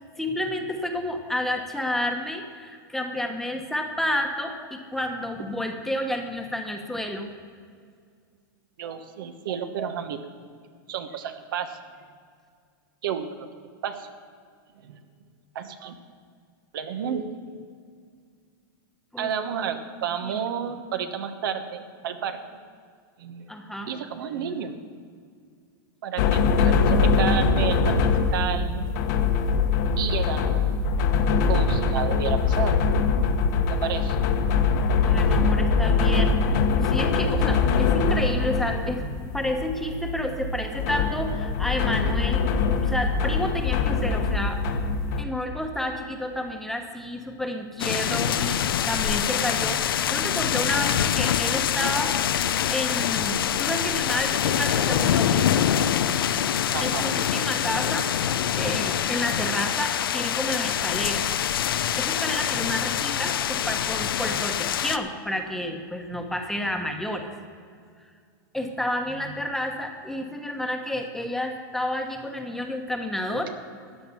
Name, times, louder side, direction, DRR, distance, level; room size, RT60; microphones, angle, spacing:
voice 1, 0.0-7.3 19.1-19.3 20.3-20.4 23.5-23.9 35.0-42.4 42.8-44.8 45.2-52.1 52.5-55.6 56.8-61.6 62.0-67.3 68.5-73.5, left 1 dB, 5° left, 4 dB, 1.1 m, -30 dB
voice 2, 8.8-10.2 10.9-11.8 13.0-13.5 13.8-14.1 14.8-15.0 15.5-16.0 16.7-17.6 19.2-22.4 23.2-23.5 23.9-24.7 26.0-28.9 30.0-30.7 31.5-32.8 33.7-34.2 56.7-57.1 58.6-58.7, right 8 dB, 70° right, 7 dB, 1.2 m, -31 dB
sound 1, 26.2-45.2, left 4 dB, 55° left, 1.2 m, -23 dB
sound 2, 47.8-65.0, left 9 dB, 90° left, 0.6 m, -25 dB
14.0 x 9.1 x 7.0 m, 2.1 s
supercardioid pair, 140°, 11 cm